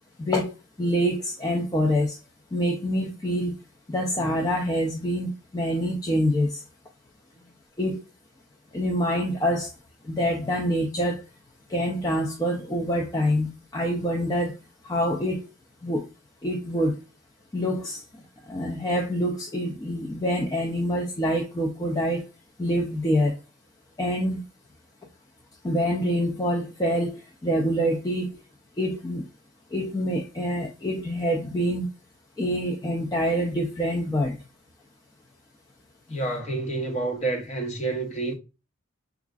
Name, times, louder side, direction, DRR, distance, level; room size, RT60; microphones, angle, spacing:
voice 1, 0.2-0.5 0.8-2.2 2.5-3.5 3.9-6.6 7.8-8.0 8.7-9.7 10.1-11.2 11.7-14.6 14.8-15.5 15.8-16.1 16.4-17.0 17.5-18.0 18.5-22.2 22.6-23.4 24.0-24.4 25.6-28.4 28.8-29.3 29.7-31.9 32.4-34.4, equal, 20° left, 0.4 m, -26 dB
voice 2, 36.1-38.3, right 2 dB, 35° left, 0.8 m, -29 dB
4.7 x 2.4 x 2.3 m
head